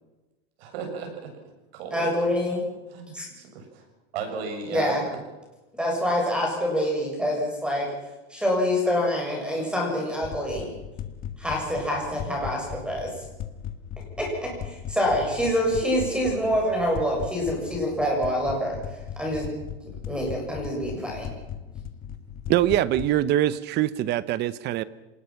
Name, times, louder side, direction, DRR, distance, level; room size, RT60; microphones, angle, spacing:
voice 1, 0.6-1.3 1.7-2.1 2.9-3.8 4.1-5.0, right 5 dB, 70° right, 3 dB, 7.5 m, -34 dB
voice 2, 1.9-2.7 3.1-3.3 4.7-5.0 5.8-7.9 8.3-10.7 11.4-13.1 14.0-18.8 19.2-19.5 20.0-21.3, equal, 5° right, 0 dB, 7.1 m, -26 dB
sound 1, 10.2-23.2, left 9 dB, 30° left, 1.4 m, -38 dB
voice 3, 22.5-24.8, right 13 dB, 35° right, 18 dB, 0.9 m, -23 dB
26.0 x 19.5 x 5.9 m, 1.1 s
supercardioid pair, 150°, 31 cm